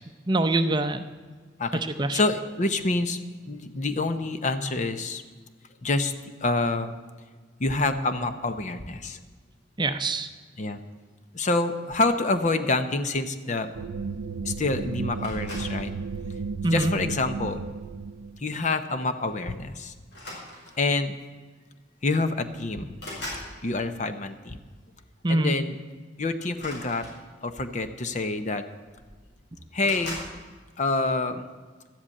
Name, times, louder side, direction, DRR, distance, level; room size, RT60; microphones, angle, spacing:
voice 1, 0.3-1.0 2.0-2.2 9.8-10.3 16.6-16.9 25.2-25.5, right 2 dB, 25° right, 9 dB, 0.6 m, -24 dB
voice 2, 2.1-3.2 3.5-5.2 5.8-6.1 6.4-6.9 7.6-9.2 10.6-10.8 11.3-13.7 14.4-15.9 16.6-17.6 18.4-19.9 20.8-21.2 22.0-23.0 23.6-24.6 25.3-25.8 26.2-27.1 27.4-28.6 29.7-30.2 30.8-31.4, left 2 dB, 40° left, 9 dB, 0.8 m, -27 dB
sound 1, 13.7-18.4, right 4 dB, 80° right, 0.4 m, -33 dB
sound 2, 15.2-15.9 16.7-17.1 18.6-18.7 19.0-19.2 20.1-20.9 21.9-22.0 22.3-23.5 26.5-27.6 28.5-28.6 28.8-29.3 29.8-30.4, left 1 dB, 70° left, 5.1 m, -40 dB
12.5 x 8.0 x 8.6 m, 1.4 s
head